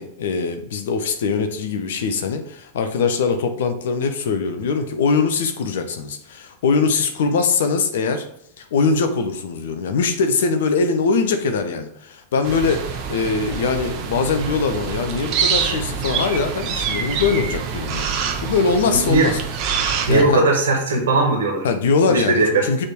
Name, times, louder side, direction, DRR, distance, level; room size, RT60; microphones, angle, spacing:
voice 1, 0.0-8.3 8.6-19.4 20.1-20.4 21.6-22.8, left 4 dB, 60° left, 7 dB, 0.8 m, -22 dB
sound 1, 12.4-20.2, right 6 dB, 40° right, 1.0 m, -26 dB
voice 2, 18.9-19.3 20.1-21.6 22.1-22.7, right 2 dB, 60° right, 1 dB, 1.5 m, -18 dB
6.5 x 3.7 x 4.7 m, 0.70 s
figure-of-eight pair, 90°, 0 cm